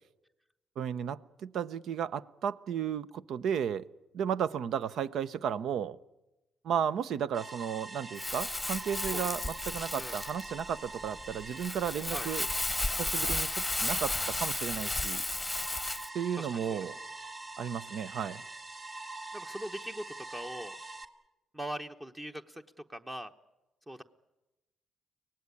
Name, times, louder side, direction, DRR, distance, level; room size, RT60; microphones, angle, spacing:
voice 1, 0.8-3.8 4.1-6.0 6.6-12.5 13.0-15.2 16.1-17.0 17.6-18.4, right 8 dB, 75° right, 15 dB, 0.7 m, -34 dB
sound 1, 7.3-21.0, right 2 dB, 35° right, 1.8 m, -44 dB
Crumpling crinkling, 8.2-16.1, left 2 dB, 10° left, 0.9 m, -34 dB
voice 2, 16.4-16.8 19.3-20.8 21.5-23.3 23.9-24.0, right 1 dB, 15° right, 6 dB, 1.0 m, -41 dB
24.0 x 18.0 x 9.8 m, 1.0 s
cardioid pair, 90°, 0 cm